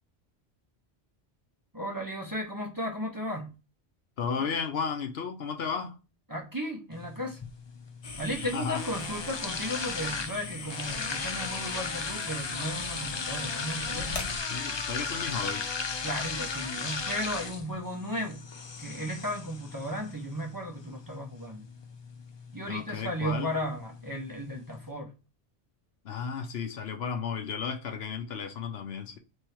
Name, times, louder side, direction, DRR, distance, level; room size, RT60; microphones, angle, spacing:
voice 1, 1.7-3.5 4.4-4.5 6.3-7.4 8.2-14.3 16.0-18.4 18.8-21.6 22.5-25.1, equal, 20° right, 0.9 m, -35 dB
voice 2, 4.2-5.9 8.5-8.8 14.5-15.7 22.7-23.5 26.0-29.2, left 6 dB, 70° left, 0.9 m, -33 dB
sound 1, 6.9-24.9, left 4 dB, 45° left, 0.3 m, -37 dB
sound 2, 8.0-14.4, left 3 dB, 85° left, 1.3 m, -40 dB
3.5 x 3.4 x 4.3 m
omnidirectional pair, 1.1 m